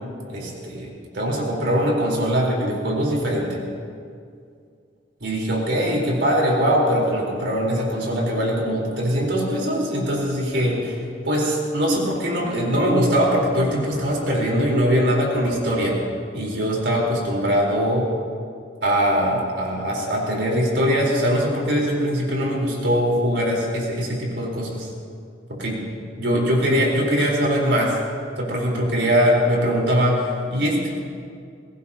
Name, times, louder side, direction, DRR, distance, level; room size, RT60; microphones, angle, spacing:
voice 1, 0.3-3.6 5.2-10.9 11.3-16.0 16.3-18.1 18.8-24.9 25.5-25.8 26.2-28.0 28.4-31.0, equal, 85° right, -2 dB, 4.1 m, -22 dB
22.5 x 18.5 x 2.9 m, 2.2 s
head